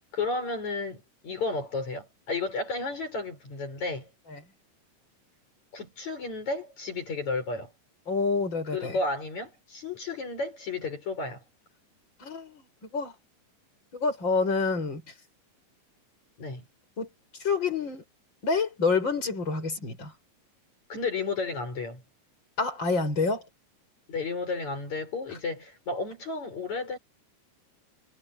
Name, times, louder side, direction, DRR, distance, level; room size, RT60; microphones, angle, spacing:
voice 1, 0.1-4.1 5.7-7.7 8.7-11.4 16.4-16.6 20.9-22.0 24.1-27.0, left 3 dB, 55° left, 7.3 m, -32 dB
voice 2, 8.1-9.0 12.2-12.6 12.9-13.1 13.9-15.0 17.0-17.1 17.4-18.0 18.4-20.1 22.6-23.4, left 4 dB, 35° left, 7.7 m, -27 dB
omnidirectional pair, 3.8 m